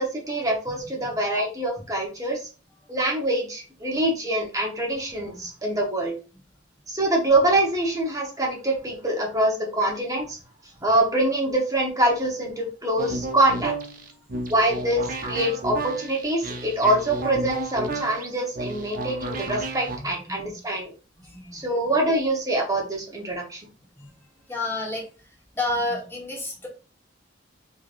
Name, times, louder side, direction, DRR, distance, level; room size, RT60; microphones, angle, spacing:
voice 1, 0.0-2.5 2.9-6.1 6.9-10.4 10.8-13.7 14.5-20.9 21.5-23.6, right 1 dB, 20° right, 0 dB, 1.0 m, -24 dB
sound 1, 13.0-20.0, right 2 dB, 45° right, 0.5 m, -32 dB
voice 2, 20.0-20.6 21.2-21.6 24.0-24.1 24.5-25.0 25.5-26.7, left 2 dB, 15° left, -2 dB, 1.2 m, -31 dB
3.7 x 3.3 x 2.5 m, 0.35 s
head